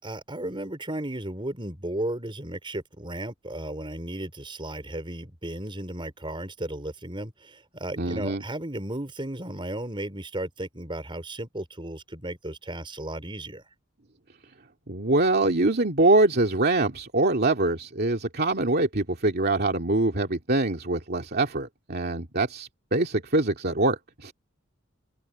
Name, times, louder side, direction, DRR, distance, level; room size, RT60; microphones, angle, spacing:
voice 1, 0.0-13.6, right 1 dB, 25° right, 4.7 m, -34 dB
voice 2, 8.0-8.4 14.9-24.3, right 2 dB, 50° right, 2.4 m, -24 dB
head